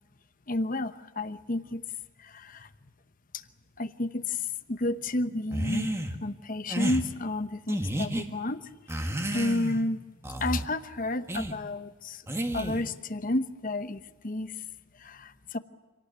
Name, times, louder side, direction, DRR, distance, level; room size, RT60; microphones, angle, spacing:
voice 1, 0.5-1.8 2.2-2.7 3.3-3.4 3.8-4.4 4.7-5.9 6.2-8.6 9.3-10.0 10.4-12.2 12.5-14.5 15.0-15.6, left 2 dB, 40° left, 12 dB, 0.9 m, -31 dB
Small Smurf Noises, 5.5-6.1 6.7-7.0 7.7-8.3 8.9-9.8 10.2-10.7 11.3-11.5 12.3-12.9, right 1 dB, 15° right, 1.6 m, -31 dB
26.5 x 18.0 x 9.5 m, 1.3 s
head